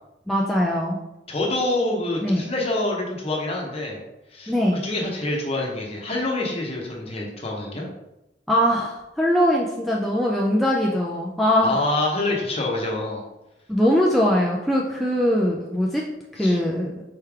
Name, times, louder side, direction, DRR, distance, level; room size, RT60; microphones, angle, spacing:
voice 1, 0.3-1.0 2.2-2.4 4.5-4.8 8.5-11.8 13.7-16.1 16.3-17.0, equal, ahead, -4 dB, 0.4 m, -21 dB
voice 2, 1.3-4.0 4.3-7.9 11.6-13.2 16.4-16.6, left 2 dB, 35° left, -1 dB, 0.9 m, -26 dB
4.4 x 3.2 x 3.5 m, 0.93 s
head